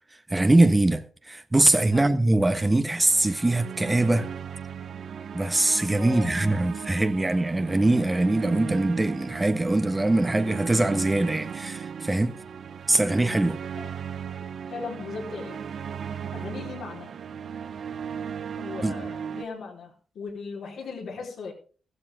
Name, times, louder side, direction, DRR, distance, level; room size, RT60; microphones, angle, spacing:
voice 1, 0.3-4.3 5.3-12.4 12.9-13.6 18.8-19.0, right 2 dB, 20° right, 1.3 m, -22 dB
voice 2, 1.9-2.2 5.9-6.3 13.8-13.9 14.7-15.6 16.3-17.1 18.6-21.5, left 4 dB, 75° left, 4.6 m, -37 dB
sound 1, 2.9-19.4, right 7 dB, 65° right, 0.9 m, -36 dB
14.5 x 13.0 x 3.7 m
supercardioid pair, 55°, 0 cm